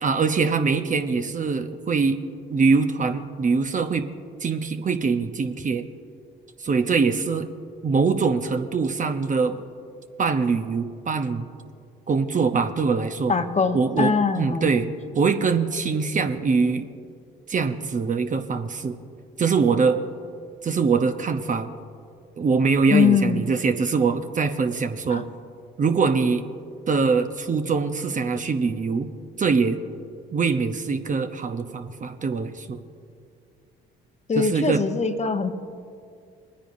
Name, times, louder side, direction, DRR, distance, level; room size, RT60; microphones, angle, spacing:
voice 1, 0.0-2.2 2.5-4.1 4.4-5.9 6.6-7.5 7.8-9.6 10.2-11.5 12.1-13.3 13.7-14.9 15.1-16.9 17.5-19.0 19.4-20.0 20.6-21.8 22.4-25.3 25.8-26.4 26.9-29.1 29.4-29.8 30.3-32.8 34.4-34.8, right 5 dB, 35° right, 7 dB, 0.8 m, -23 dB
voice 2, 13.3-14.7 22.9-23.4 25.1-25.2 34.3-35.5, left 6 dB, 30° left, 7 dB, 1.1 m, -22 dB
20.5 x 10.0 x 2.6 m, 2.3 s
hypercardioid pair, 55°, 21 cm